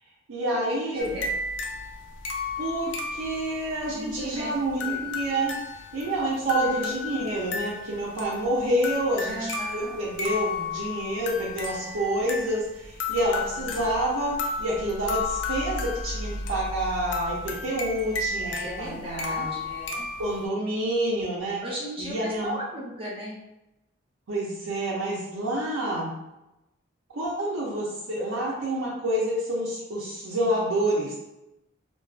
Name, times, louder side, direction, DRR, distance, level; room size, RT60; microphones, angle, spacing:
voice 1, 0.3-1.1 2.6-5.5 5.9-19.5 20.2-21.6 22.0-22.6 24.3-26.1 27.1-31.1, right 1 dB, 80° right, -5 dB, 0.5 m, -28 dB
voice 2, 0.9-1.3 3.9-4.5 4.8-5.1 6.7-6.9 9.2-9.9 13.5-13.9 18.4-20.0 21.6-23.4, equal, 25° right, -4 dB, 0.6 m, -36 dB
sound 1, 1.0-20.5, left 4 dB, 60° left, 0.3 m, -33 dB
2.4 x 2.2 x 2.3 m, 0.93 s
head